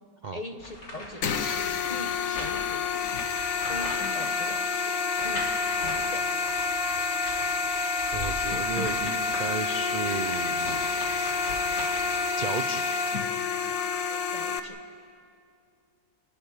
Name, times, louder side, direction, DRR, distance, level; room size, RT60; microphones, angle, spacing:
voice 1, 0.3-1.3 1.9-2.9 3.7-4.6 5.2-5.5 5.8-6.2 7.6-7.7 14.3-14.8, left 1 dB, 25° left, 6 dB, 0.9 m, -41 dB
sound 1, 0.6-4.6 5.2-6.0 6.4-12.5, left 2 dB, 80° left, 4.1 m, -40 dB
sound 2, 1.2-14.6, left 4 dB, 55° left, 1.3 m, -28 dB
voice 2, 8.1-10.8 12.4-12.9 13.6-13.9, right 4 dB, 65° right, 8 dB, 0.4 m, -34 dB
29.0 x 12.0 x 9.8 m, 2.4 s
omnidirectional pair, 1.9 m